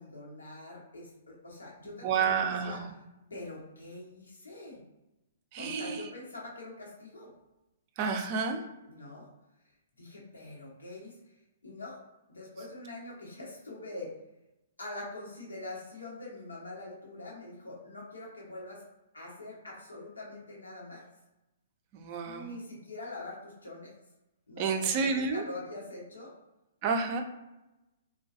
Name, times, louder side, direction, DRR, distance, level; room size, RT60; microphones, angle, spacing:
voice 1, 0.0-2.8 3.3-4.8 5.6-7.3 8.9-9.3 10.0-11.2 11.6-12.0 12.3-14.1 14.8-18.8 19.1-21.0 22.2-23.9 24.5-26.3, left 2 dB, 85° left, -4 dB, 0.9 m, -44 dB
voice 2, 2.0-2.9 5.5-6.1 8.0-8.6 21.9-22.5 24.6-25.4 26.8-27.2, right 5 dB, 40° right, 4 dB, 0.4 m, -30 dB
2.3 x 2.2 x 2.6 m, 0.96 s
figure-of-eight pair, 120°, 0 cm